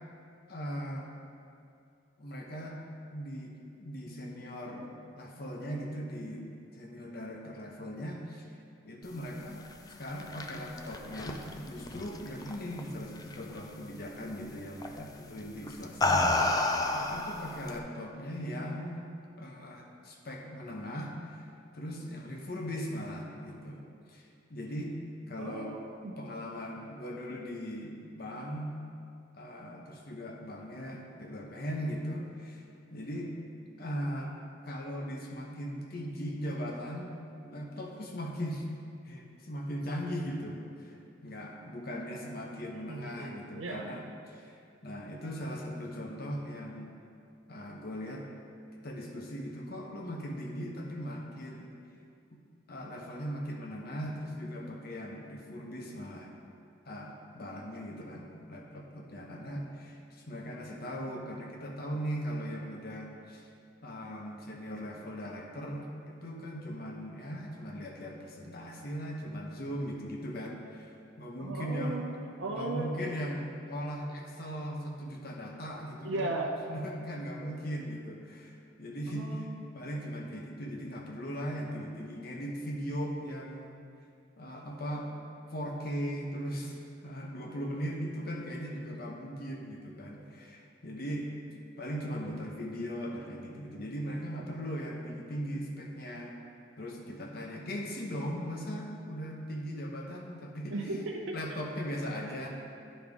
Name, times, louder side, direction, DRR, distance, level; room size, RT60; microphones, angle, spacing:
voice 1, 0.5-1.1 2.2-2.8 3.1-4.9 5.2-8.5 8.8-16.6 16.9-19.1 19.4-21.5 21.7-23.8 24.1-24.9 25.3-25.8 26.2-28.8 29.4-32.6 32.9-33.3 33.8-34.3 34.6-38.7 39.0-41.0 41.2-44.0 44.3-44.5 44.8-46.9 47.5-48.2 48.7-51.7 52.3-52.4 52.7-56.3 56.9-63.5 63.8-72.1 72.5-76.4 76.7-79.5 79.7-83.8 84.4-85.1 85.5-86.8 87.0-91.3 91.8-96.3 96.8-100.7 101.3-102.5, equal, 50° left, 0 dB, 1.0 m, -39 dB
sound 1, 9.9-12.8 13.2-13.6 14.8-15.0 15.7-17.8, left 2 dB, 20° left, 0.3 m, -30 dB
voice 2, 25.4-26.1 42.7-43.9 71.4-73.2 76.0-76.6 79.1-79.6 100.7-101.4, right 2 dB, 75° right, 0 dB, 0.6 m, -37 dB
10.0 x 3.6 x 5.2 m, 2.5 s
head